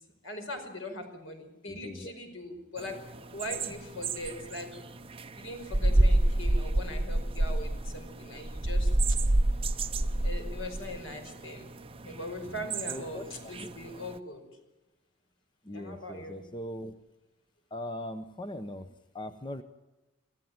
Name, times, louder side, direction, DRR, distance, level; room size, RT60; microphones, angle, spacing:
voice 1, 0.2-3.0 3.3-4.7 5.4-8.9 10.2-11.7 12.0-14.4 15.7-16.4, left 1 dB, 65° left, 5 dB, 5.2 m, -40 dB
voice 2, 1.7-2.1 12.4-13.7 15.6-16.9 17.7-19.6, left 1 dB, 25° left, 10 dB, 0.8 m, -40 dB
sound 1, 2.8-14.1, right 1 dB, 25° right, 0.8 m, -29 dB
26.0 x 15.5 x 8.9 m, 1.1 s
head